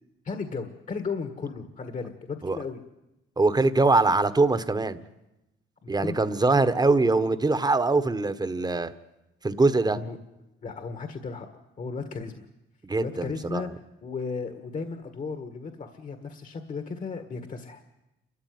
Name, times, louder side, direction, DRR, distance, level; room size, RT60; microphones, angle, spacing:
voice 1, 0.2-2.8 5.8-6.8 9.9-10.2 10.6-11.5 11.8-12.5 13.0-13.7 14.0-17.8, left 4 dB, 40° left, 7 dB, 1.7 m, -35 dB
voice 2, 3.4-5.0 5.9-8.9 9.4-10.0 12.8-13.7, right 3 dB, 20° right, 11 dB, 1.3 m, -23 dB
28.5 x 13.5 x 9.5 m, 0.96 s
cardioid pair, 90°, 20 cm